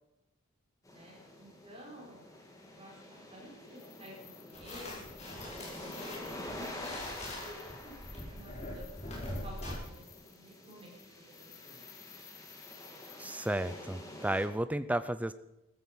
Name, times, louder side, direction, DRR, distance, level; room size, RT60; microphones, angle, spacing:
sound 1, 0.8-14.5, left 1 dB, 15° left, 2.2 m, -48 dB
voice 1, 0.9-2.3 2.7-7.1 7.4-8.9 9.4-11.9, equal, 25° right, -3 dB, 5.6 m, -52 dB
sound 2, 3.7-13.5, left 11 dB, 65° left, 2.0 m, -57 dB
sound 3, 4.5-9.7, left 1 dB, 30° left, 4.8 m, -43 dB
voice 2, 13.2-15.3, right 1 dB, 5° right, 13 dB, 0.5 m, -33 dB
14.5 x 14.5 x 5.5 m, 0.92 s
head